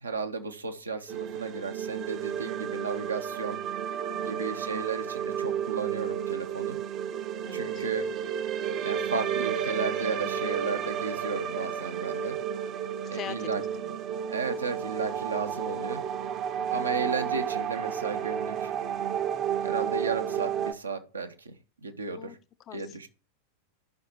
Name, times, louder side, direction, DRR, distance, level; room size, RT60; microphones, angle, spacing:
voice 1, 0.0-3.6 4.2-6.8 7.5-8.0 8.8-12.4 13.1-13.6 14.3-16.0 16.7-18.7 19.6-21.5 21.8-22.4 22.7-23.1, right 4 dB, 75° right, 0.9 m, -34 dB
sound 1, 1.1-20.7, right 8 dB, 35° right, 0.7 m, -32 dB
voice 2, 4.1-4.5 7.4-7.9 13.0-14.0 16.6-16.9 22.2-23.0, left 10 dB, 30° left, 0.6 m, -44 dB
13.5 x 5.6 x 3.0 m
figure-of-eight pair, 90°, 0 cm